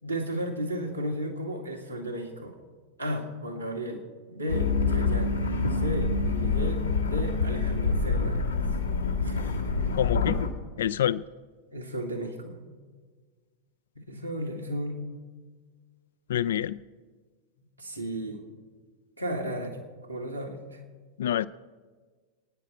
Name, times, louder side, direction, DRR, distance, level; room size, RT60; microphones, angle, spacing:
voice 1, 0.0-2.5 3.0-4.0 4.3-5.4 5.7-8.4 9.2-9.4 11.7-12.6 14.0-15.1 17.8-18.4 19.2-19.8 20.1-20.8, equal, 85° right, -1 dB, 2.1 m, -34 dB
sound 1, 4.5-10.5, left 4 dB, 80° left, 1.7 m, -26 dB
voice 2, 9.9-10.4 10.8-11.2 16.3-16.8 21.2-21.5, left 11 dB, 60° left, 19 dB, 0.4 m, -26 dB
26.0 x 9.7 x 4.4 m, 1.5 s
figure-of-eight pair, 90°, 0 cm